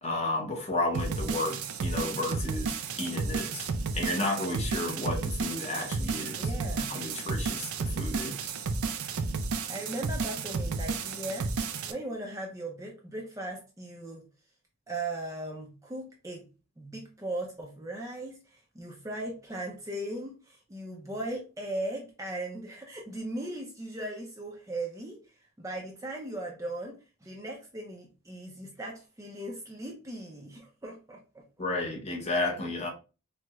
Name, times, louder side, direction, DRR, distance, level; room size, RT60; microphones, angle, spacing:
voice 1, 0.0-3.7 3.9-6.5 6.9-8.4 31.6-32.9, left 2 dB, 30° left, 0.7 m, -32 dB
sound 1, 0.9-11.9, right 4 dB, 75° right, 0.4 m, -32 dB
voice 2, 6.4-6.9 9.7-11.5 11.9-14.2 14.9-16.5 16.8-25.2 25.6-27.0 27.2-31.4, right 1 dB, 15° right, 0.4 m, -38 dB
4.4 x 2.0 x 2.3 m
head